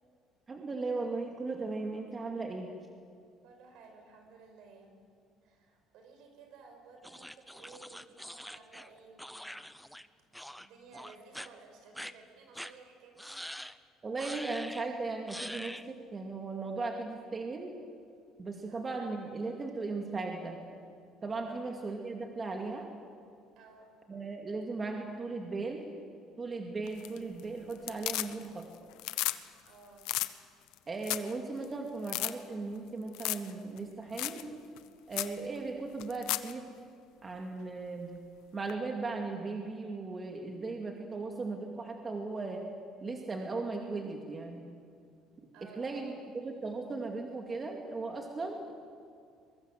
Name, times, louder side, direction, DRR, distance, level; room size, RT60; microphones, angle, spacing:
voice 1, 0.5-2.7 14.0-17.8 18.4-20.7 21.2-22.9 24.1-25.9 26.4-28.7 30.9-34.5 35.1-36.7 37.2-38.1 38.5-42.6 43.0-44.7 45.6-48.7, right 3 dB, 25° right, 2 dB, 2.4 m, -37 dB
voice 2, 3.4-5.0 5.4-9.5 10.6-13.7 18.7-18.9 21.5-21.6 23.6-23.9 29.7-30.2 45.5-46.2, right 4 dB, 70° right, 4 dB, 5.9 m, -55 dB
sound 1, 7.0-10.1 10.3-10.7 10.9-11.5 11.9-12.1 12.5-12.7 13.2-13.8 14.2-14.8 15.3-15.9, equal, ahead, 0.7 m, -44 dB
sound 2, 26.9-27.4 27.7-28.6 28.9-29.4 29.7-29.8 30.0-30.3 30.7-30.8 31.0-31.3 31.6-31.7 32.0-32.3 33.1-33.5 33.8-33.9 34.2-34.4 34.8-34.9 35.1-35.3 36.0-36.5 38.7-38.8, left 17 dB, 85° left, 0.9 m, -33 dB
22.5 x 22.5 x 7.9 m, 2.3 s
cardioid pair, 125°, 0 cm